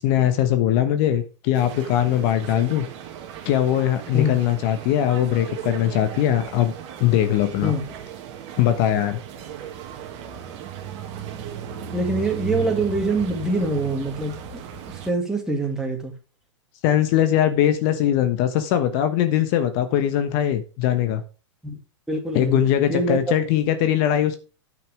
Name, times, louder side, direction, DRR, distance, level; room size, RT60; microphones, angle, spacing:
voice 1, 0.0-2.8 3.4-6.7 7.0-7.7 8.6-9.2 16.8-21.2 22.3-24.4, left 11 dB, 45° left, 1.2 m, -21 dB
sound 1, 1.5-15.1, right 9 dB, 40° right, 2.0 m, -36 dB
voice 2, 11.9-14.6 14.9-16.1 21.6-21.8 22.1-22.6 22.9-23.3, right 1 dB, 5° right, 2.4 m, -24 dB
9.6 x 5.8 x 4.9 m
hypercardioid pair, 125°, 16 cm